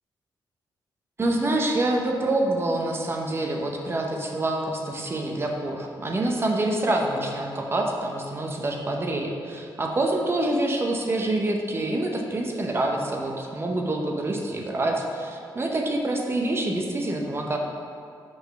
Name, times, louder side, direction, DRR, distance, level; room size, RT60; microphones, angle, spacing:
voice 1, 1.2-17.6, right 2 dB, 30° right, 1 dB, 0.7 m, -26 dB
5.1 x 4.0 x 5.6 m, 2.4 s
cardioid pair, 120°, 8 cm